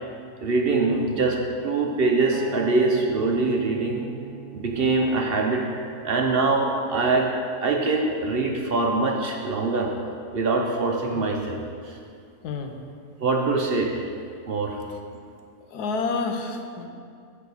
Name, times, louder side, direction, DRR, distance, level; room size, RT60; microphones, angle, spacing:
voice 1, 0.4-4.1 4.5-7.3 7.6-9.9 10.3-11.6 11.8-12.0 13.2-14.0 14.5-14.8, right 3 dB, 50° right, 1 dB, 0.8 m, -23 dB
Acoustic guitar, 2.3-6.7 7.3-7.5, right 7 dB, 85° right, 1.2 m, -40 dB
voice 2, 12.4-12.8 15.7-16.9, left 4 dB, 85° left, 5 dB, 1.3 m, -29 dB
9.3 x 3.8 x 7.1 m, 2.3 s
omnidirectional pair, 1.6 m